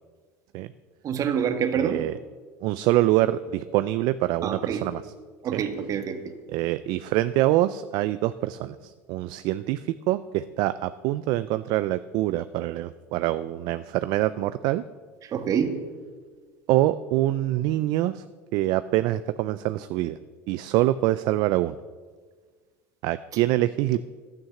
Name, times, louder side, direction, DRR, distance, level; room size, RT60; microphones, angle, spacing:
voice 1, 1.0-2.1 4.4-4.9 5.4-6.3 15.3-15.8, right 7 dB, 45° right, 8 dB, 1.5 m, -27 dB
voice 2, 1.8-2.2 2.6-5.1 5.5-5.6 6.5-14.8 16.7-18.3 18.5-20.2 20.5-21.8 23.0-24.0, right 15 dB, 60° right, 13 dB, 0.4 m, -25 dB
11.0 x 9.2 x 7.0 m, 1.5 s
supercardioid pair, 95°, 8 cm